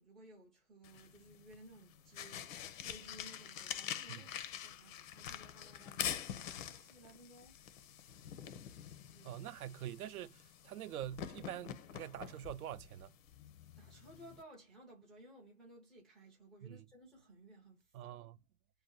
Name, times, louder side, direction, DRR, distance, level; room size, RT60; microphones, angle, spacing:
voice 1, 0.0-6.0 6.6-7.6 9.1-9.4 13.8-18.1, right 1 dB, ahead, 0.3 m, -58 dB
sound 1, 0.8-14.4, left 10 dB, 65° left, 0.6 m, -46 dB
voice 2, 9.2-13.1 16.6-16.8 17.9-18.4, right 11 dB, 80° right, 0.5 m, -45 dB
2.7 x 2.1 x 3.7 m
hypercardioid pair, 125°, 43 cm